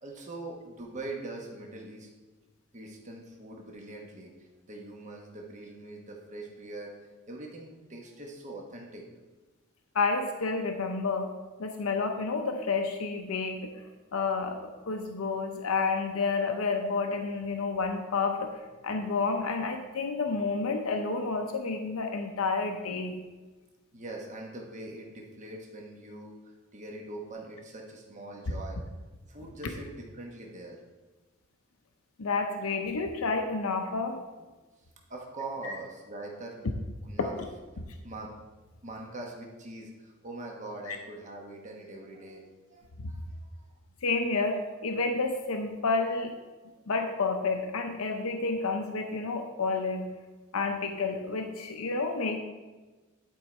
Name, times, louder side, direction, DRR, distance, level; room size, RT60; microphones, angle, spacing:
voice 1, 0.0-2.1 2.7-7.0 7.3-9.0 23.9-28.8 29.3-30.8 35.1-36.7 37.0-37.3 38.0-38.3 38.8-43.6, right 2 dB, 35° right, 0 dB, 1.1 m, -42 dB
voice 2, 9.9-11.3 11.6-13.7 14.1-23.2 32.2-34.2 35.6-35.7 37.2-37.3 40.9-41.0 44.0-46.3 46.9-50.1 50.5-52.4, left 4 dB, 90° left, 4 dB, 0.7 m, -30 dB
10.5 x 4.6 x 4.3 m, 1.2 s
head